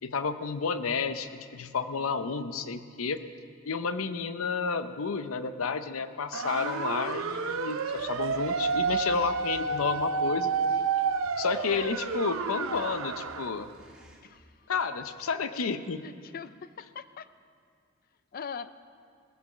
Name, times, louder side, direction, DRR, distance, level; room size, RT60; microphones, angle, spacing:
voice 1, 0.0-3.2 3.7-10.5 11.4-13.7 14.7-16.0, left 5 dB, 85° left, 11 dB, 0.6 m, -31 dB
sound 1, 6.3-13.5, right 5 dB, 75° right, 0.6 m, -30 dB
sound 2, 6.4-14.2, equal, 5° right, 1.9 m, -54 dB
voice 2, 14.2-14.7 16.0-17.3 18.3-18.7, left 6 dB, 45° left, 13 dB, 0.5 m, -42 dB
18.5 x 7.8 x 7.3 m, 2.2 s
head